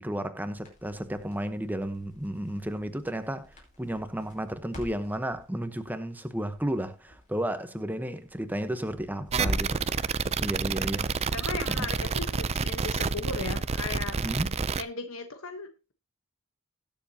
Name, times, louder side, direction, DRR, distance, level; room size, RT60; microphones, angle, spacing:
voice 1, 0.0-11.1 11.7-11.9 14.2-14.5, right 1 dB, 10° right, 0.9 m, -33 dB
Crackle, 0.5-9.8, left 1 dB, 35° left, 5.1 m, -44 dB
sound 1, 9.3-14.8, right 5 dB, 30° right, 0.4 m, -29 dB
voice 2, 11.3-14.2 14.8-15.9, left 3 dB, 75° left, 1.2 m, -37 dB
19.0 x 7.1 x 2.8 m
head